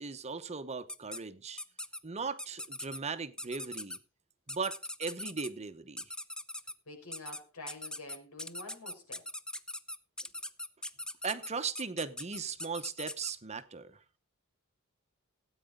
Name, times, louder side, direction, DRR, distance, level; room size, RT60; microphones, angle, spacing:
voice 1, 0.0-1.6 2.0-4.0 4.5-6.1 11.2-14.0, right 5 dB, 30° right, 0.9 m, -38 dB
sound 1, 0.9-1.2 1.6-2.0 2.4-3.0 3.4-4.0 4.5-5.5 6.0-6.7 7.1-7.4 7.7-13.3, left 1 dB, 5° left, 0.5 m, -41 dB
voice 2, 6.9-9.2, left 2 dB, 85° left, 4.9 m, -47 dB
17.0 x 9.2 x 3.7 m
head